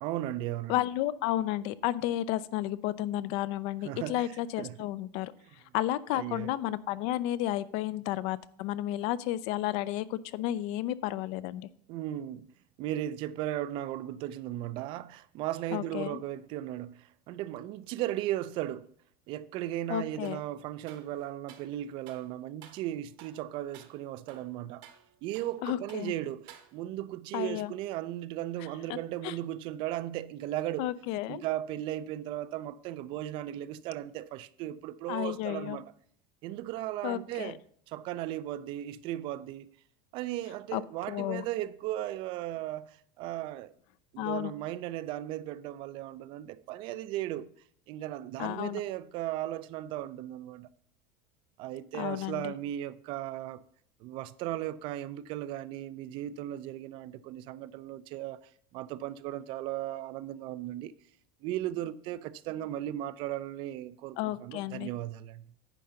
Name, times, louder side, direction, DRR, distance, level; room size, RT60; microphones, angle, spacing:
voice 1, 0.0-0.8 3.8-4.3 4.6-4.9 6.1-6.5 11.9-12.5 12.8-18.9 19.3-24.9 25.2-30.9 31.3-35.8 36.4-37.6 37.9-39.7 40.1-43.7 44.1-47.5 47.9-50.7 51.6-53.6 54.0-58.4 58.7-60.9 61.4-65.4, right 13 dB, 45° right, 0.4 m, -36 dB
voice 2, 0.7-5.3 5.7-11.7 15.7-16.2 19.9-20.4 25.6-26.1 27.3-27.7 28.9-29.0 29.2-29.3 30.8-31.4 35.1-35.8 37.0-37.6 40.7-40.8 41.1-41.4 44.2-44.5 48.4-48.8 51.9-52.5 64.2-64.9, left 14 dB, 50° left, 0.4 m, -32 dB
sound 1, 20.2-20.5 20.9-21.7 22.1-22.3 22.6-22.9 23.2-23.4 23.7-24.0 24.3-25.6 25.9-26.1 26.5-27.0, right 10 dB, 65° right, 1.2 m, -54 dB
9.8 x 3.8 x 6.8 m
cardioid pair, 165°, 13 cm